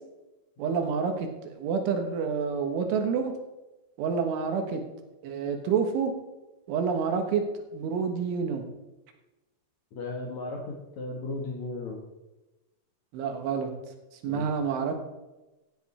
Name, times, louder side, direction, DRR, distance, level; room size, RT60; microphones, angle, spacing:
voice 1, 0.6-1.3 1.6-3.3 4.0-4.8 5.2-6.1 6.7-7.4 7.7-8.6 13.1-13.7 14.2-14.9, right 6 dB, 75° right, 5 dB, 3.8 m, -28 dB
voice 2, 9.9-12.0 14.3-14.5, left 2 dB, 75° left, -1 dB, 1.7 m, -35 dB
16.5 x 10.5 x 4.3 m, 1.0 s
omnidirectional pair, 5.7 m